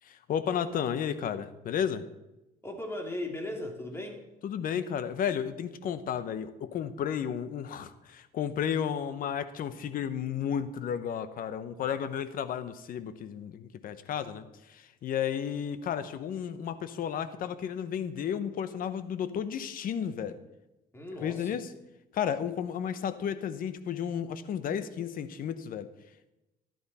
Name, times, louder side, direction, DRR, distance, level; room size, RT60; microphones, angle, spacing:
voice 1, 0.0-2.0 4.4-20.4 21.2-21.7 22.1-25.9, left 8 dB, 55° left, 13 dB, 1.0 m, -33 dB
voice 2, 2.6-4.2 20.9-21.6, left 1 dB, 15° left, 2 dB, 2.7 m, -37 dB
14.0 x 11.5 x 4.2 m, 0.97 s
cardioid pair, 110°, 17 cm